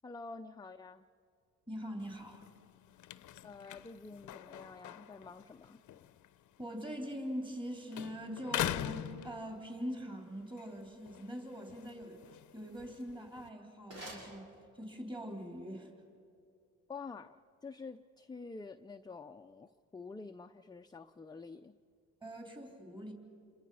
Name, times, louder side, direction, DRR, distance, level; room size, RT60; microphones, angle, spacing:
voice 1, 0.0-1.1 3.4-5.8 16.9-21.7, left 4 dB, 15° left, 6 dB, 0.5 m, -48 dB
voice 2, 1.7-2.4 6.6-15.9 22.2-23.1, equal, 15° right, 2 dB, 3.6 m, -43 dB
sound 1, 2.0-7.6 7.9-9.9 10.4-13.5, left 12 dB, 75° left, 0.7 m, -43 dB
sound 2, 13.7-15.1, right 1 dB, 90° right, 6.8 m, -51 dB
28.5 x 22.0 x 5.6 m, 2.3 s
cardioid pair, 90°, 30 cm